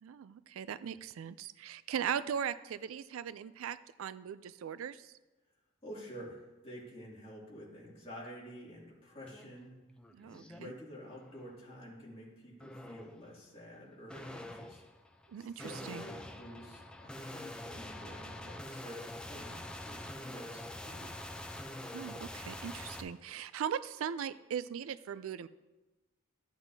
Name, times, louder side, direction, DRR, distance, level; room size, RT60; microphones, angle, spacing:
voice 1, 0.0-5.1 10.1-10.7 15.3-16.0 21.9-25.5, right 8 dB, 80° right, 16 dB, 0.3 m, -39 dB
voice 2, 5.8-9.7 10.2-14.8 15.4-21.1, equal, 30° left, -6 dB, 2.5 m, -49 dB
sound 1, 9.3-9.5 9.9-10.6 11.1-11.5 12.6-13.2 14.1-23.0, left 1 dB, 5° left, 0.4 m, -45 dB
13.5 x 7.9 x 2.7 m, 1.1 s
head